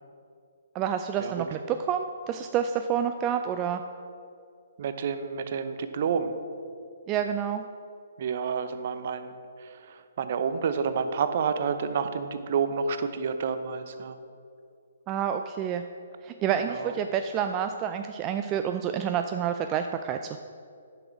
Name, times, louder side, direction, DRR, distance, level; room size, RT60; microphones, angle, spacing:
voice 1, 0.7-3.8 7.1-7.6 15.1-15.8 16.2-20.4, right 8 dB, 25° right, 7 dB, 0.4 m, -28 dB
voice 2, 4.8-6.3 8.2-9.3 9.6-14.2 16.7-16.9, right 6 dB, 50° right, 10 dB, 0.7 m, -29 dB
10.0 x 6.2 x 6.1 m, 2.4 s
figure-of-eight pair, 135°, 0 cm